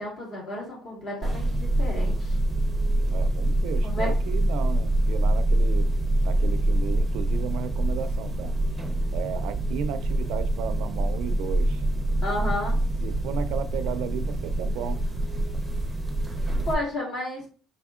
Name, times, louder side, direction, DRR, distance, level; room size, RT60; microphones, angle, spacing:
voice 1, 0.0-2.4 3.8-4.1 12.2-12.8 16.7-17.4, left 1 dB, 40° left, 2.3 m, -32 dB
sound 1, 1.2-16.7, right 1 dB, 5° right, 0.7 m, -25 dB
voice 2, 3.0-5.9 6.2-8.6 9.1-11.8 13.0-15.0, right 7 dB, 75° right, 0.4 m, -34 dB
5.4 x 3.5 x 2.4 m
cardioid pair, 180°, 0 cm